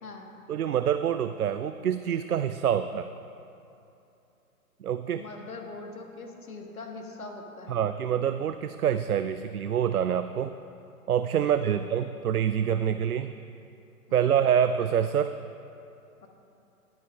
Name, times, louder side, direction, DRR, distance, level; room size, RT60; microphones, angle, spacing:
voice 1, 0.5-3.1 4.8-5.2 7.7-10.5 11.1-13.3 14.1-15.3, right 9 dB, 75° right, 10 dB, 0.5 m, -26 dB
voice 2, 5.1-7.8 11.4-11.8 14.1-14.3 16.2-16.3, left 3 dB, 70° left, 2 dB, 1.7 m, -42 dB
22.5 x 9.0 x 2.4 m, 2.7 s
figure-of-eight pair, 130°, 44 cm